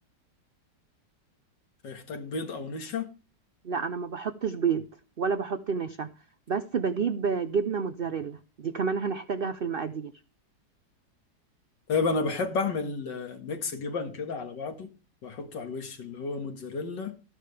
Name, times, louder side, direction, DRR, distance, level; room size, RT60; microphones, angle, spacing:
voice 1, 1.8-3.1 11.9-14.9 15.2-17.2, left 4 dB, 80° left, 2.4 m, -32 dB
voice 2, 3.6-4.9 5.2-6.1 6.5-10.1, right 6 dB, 80° right, 0.5 m, -29 dB
13.0 x 10.5 x 3.4 m
omnidirectional pair, 1.9 m